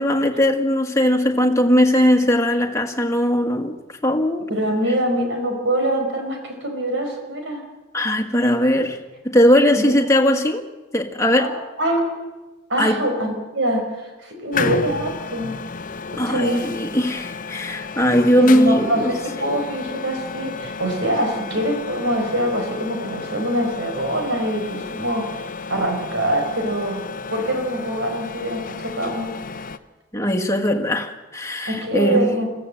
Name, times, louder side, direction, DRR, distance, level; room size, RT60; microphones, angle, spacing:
voice 1, 0.0-3.7 4.0-4.4 7.9-9.0 9.2-10.6 10.9-11.5 12.8-13.0 16.2-19.1 19.4-19.5 30.1-32.3, equal, 15° left, 4 dB, 1.7 m, -19 dB
voice 2, 4.5-7.6 9.7-9.9 11.4-11.5 11.8-12.0 12.7-15.6 16.3-16.7 18.3-27.0 27.3-29.3 31.7-32.5, right 1 dB, 70° right, 4 dB, 4.9 m, -24 dB
sound 1, 14.5-29.8, left 4 dB, 45° left, 0.8 m, -32 dB
22.5 x 15.5 x 7.8 m, 1.1 s
head